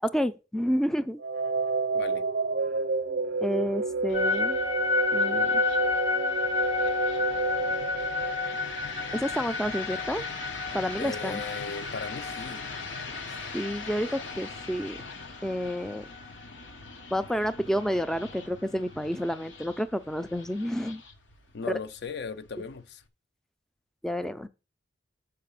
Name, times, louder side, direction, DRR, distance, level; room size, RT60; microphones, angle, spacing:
voice 1, 0.0-1.2 3.4-4.6 5.1-5.6 9.1-10.2 10.7-11.4 13.5-15.0 15.4-16.1 17.1-21.0 21.6-21.8 24.0-24.5, equal, 5° left, 0.3 m, -29 dB
sound 1, 1.2-9.2, right 3 dB, 60° right, 0.6 m, -30 dB
voice 2, 1.9-2.3 11.0-12.7 21.5-23.0, left 4 dB, 60° left, 0.5 m, -37 dB
sound 2, 4.1-23.1, left 4 dB, 85° left, 1.1 m, -42 dB
sound 3, 4.1-16.3, left 4 dB, 45° left, 0.9 m, -31 dB
6.5 x 4.8 x 6.8 m
head